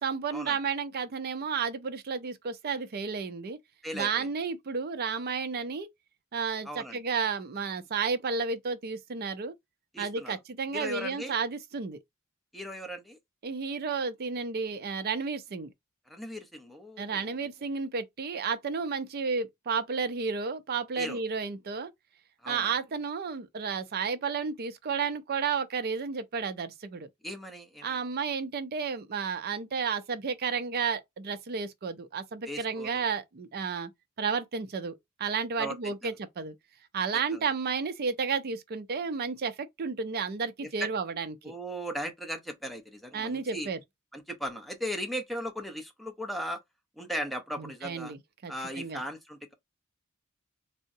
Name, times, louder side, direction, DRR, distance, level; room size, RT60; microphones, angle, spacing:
voice 1, 0.0-3.6 3.9-5.9 6.3-9.5 10.0-12.0 13.4-15.7 17.0-21.9 22.5-27.1 27.8-33.9 34.2-36.5 36.9-41.5 43.1-43.8 47.6-49.0, right 5 dB, 45° right, 0.5 m, -32 dB
voice 2, 3.8-4.3 6.6-7.0 9.9-10.4 10.7-11.3 12.5-13.2 16.1-17.5 21.0-21.2 22.4-22.7 27.2-28.0 32.5-33.1 35.6-36.2 37.3-37.5 40.6-40.9 41.4-43.7 44.1-46.6 47.0-48.1 48.5-49.5, equal, ahead, 0.6 m, -37 dB
3.6 x 2.1 x 2.6 m
head